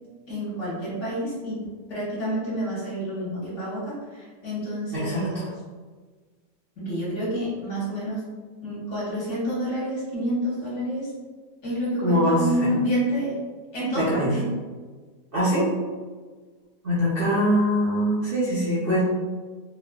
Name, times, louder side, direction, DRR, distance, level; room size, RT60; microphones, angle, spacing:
voice 1, 0.3-5.5 6.8-8.2 8.6-11.1 11.6-13.3 13.7-14.5, equal, 50° left, -8 dB, 1.3 m, -28 dB
voice 2, 4.9-5.2 12.0-12.7 13.9-14.3 15.3-15.7 16.8-19.0, equal, 80° right, -10 dB, 0.5 m, -23 dB
3.0 x 2.3 x 2.2 m, 1.5 s
omnidirectional pair, 1.8 m